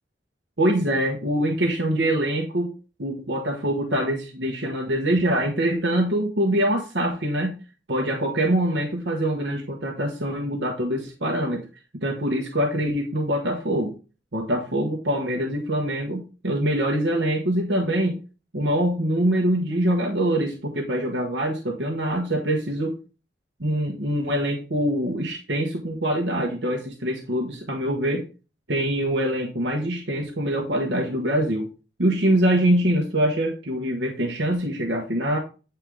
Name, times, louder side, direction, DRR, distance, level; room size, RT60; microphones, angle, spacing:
voice 1, 0.6-2.7 3.0-7.6 7.9-11.7 12.0-13.9 14.3-18.1 18.5-22.9 23.6-28.3 28.7-31.7 32.0-35.4, right 1 dB, 65° right, 1 dB, 1.4 m, -24 dB
8.7 x 4.6 x 3.7 m, 0.33 s
head